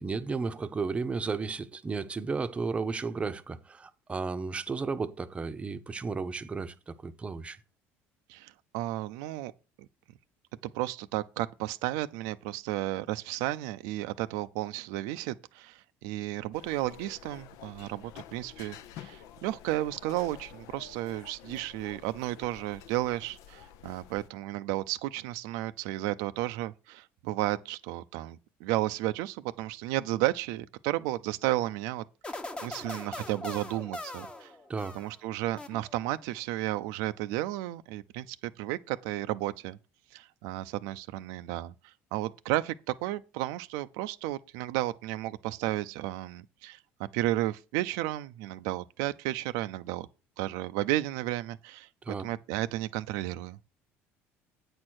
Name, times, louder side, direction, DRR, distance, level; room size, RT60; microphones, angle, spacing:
voice 1, 0.0-7.6 34.7-35.0 52.0-52.3, right 4 dB, 20° right, 0.7 m, -33 dB
voice 2, 8.3-9.5 10.6-32.0 32.6-34.5 34.9-39.8 40.1-50.1 50.4-53.6, right 16 dB, 85° right, 0.5 m, -33 dB
sound 1, 16.5-24.3, left 10 dB, 75° left, 0.7 m, -50 dB
sound 2, 32.2-35.2 35.6-36.2, left 1 dB, 15° left, 1.0 m, -41 dB
8.6 x 4.4 x 6.3 m
cardioid pair, 110°, 6 cm